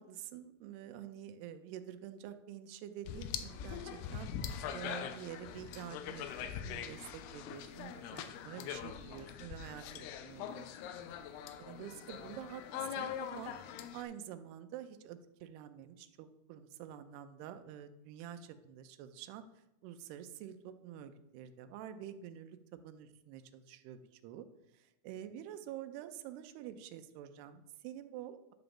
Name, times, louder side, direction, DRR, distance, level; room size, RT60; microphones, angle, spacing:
voice 1, 0.0-10.9 11.6-13.5 13.9-19.4 19.8-24.5 24.7-28.5, right 10 dB, 85° right, 10 dB, 2.7 m, -48 dB
sound 1, 3.1-14.0, left 8 dB, 90° left, 2.6 m, -43 dB
11.0 x 3.9 x 7.0 m, 0.87 s
omnidirectional pair, 4.6 m